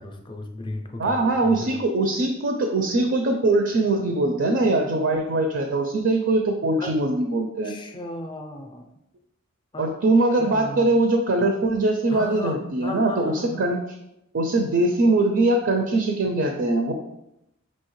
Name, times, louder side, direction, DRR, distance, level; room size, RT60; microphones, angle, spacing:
voice 1, 0.0-1.8 6.8-6.9 7.6-9.0 9.7-9.9 10.4-11.0 12.1-13.6, left 1 dB, 25° left, 3 dB, 0.4 m, -35 dB
voice 2, 1.0-7.7 9.8-13.8 14.3-16.9, right 2 dB, 60° right, 4 dB, 0.5 m, -22 dB
5.5 x 2.8 x 3.1 m, 0.84 s
head